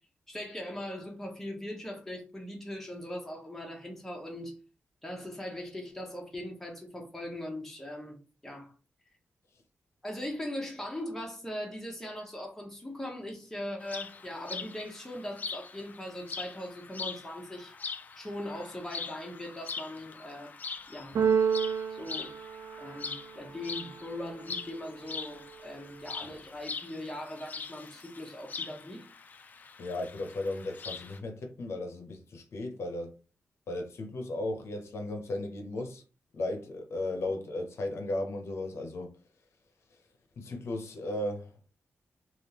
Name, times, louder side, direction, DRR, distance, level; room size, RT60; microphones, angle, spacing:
voice 1, 0.3-4.6 5.0-8.7 10.0-17.8 18.1-20.5 20.9-21.2 21.9-22.3 22.8-29.0, left 1 dB, 10° left, 0.8 m, -40 dB
sound 1, 13.8-31.2, left 5 dB, 40° left, 0.3 m, -42 dB
Keyboard (musical), 21.2-23.3, right 7 dB, 70° right, 0.3 m, -29 dB
voice 2, 29.8-33.1 33.7-36.0 36.3-39.1 40.4-41.5, left 2 dB, 75° left, 0.6 m, -35 dB
3.4 x 2.4 x 2.8 m
wide cardioid pair, 170°, 5 cm